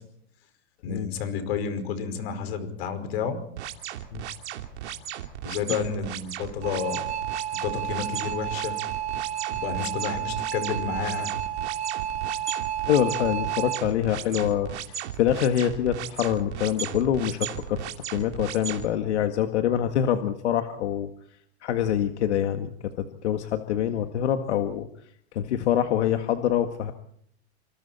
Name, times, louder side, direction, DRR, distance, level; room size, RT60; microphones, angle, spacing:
voice 1, 0.8-3.4 5.4-7.1 7.6-8.8 9.5-11.3, left 6 dB, 65° left, 9 dB, 5.2 m, -30 dB
sound 1, 3.6-18.9, right 10 dB, 90° right, 3.0 m, -35 dB
sound 2, 6.6-13.8, right 11 dB, 20° right, 0.8 m, -31 dB
voice 2, 12.9-17.8 18.1-21.1 21.6-24.9 25.3-26.9, left 10 dB, 90° left, 6 dB, 1.9 m, -25 dB
27.5 x 26.0 x 4.3 m, 0.69 s
supercardioid pair, 160°, 33 cm